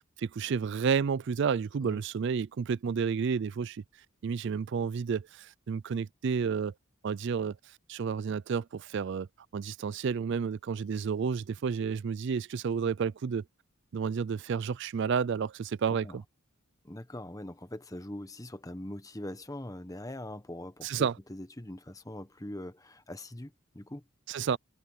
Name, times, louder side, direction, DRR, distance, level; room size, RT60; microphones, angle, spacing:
voice 1, 0.2-3.8 4.2-6.7 7.0-9.3 9.5-13.4 13.9-16.2 20.8-21.1 24.3-24.6, right 6 dB, 55° right, 0.4 m, -31 dB
voice 2, 16.8-24.0, left 1 dB, 15° left, 1.2 m, -42 dB
head